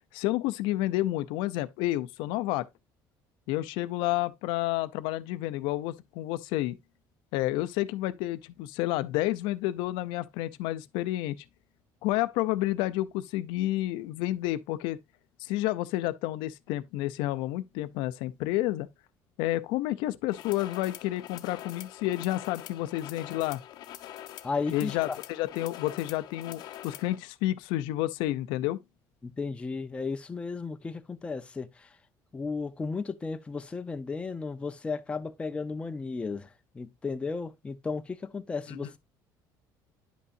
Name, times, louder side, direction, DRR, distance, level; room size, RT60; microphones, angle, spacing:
voice 1, 0.1-2.7 3.5-6.8 7.3-11.4 12.0-15.0 15.4-18.9 19.4-23.6 24.7-28.8 38.7-38.9, left 16 dB, 90° left, 0.6 m, -30 dB
sound 1, 20.3-27.2, left 12 dB, 60° left, 0.8 m, -44 dB
voice 2, 24.4-25.2 29.2-31.9 32.3-36.5 36.7-39.0, left 4 dB, 15° left, 0.6 m, -34 dB
9.8 x 5.5 x 2.6 m
cardioid pair, 155°, 8 cm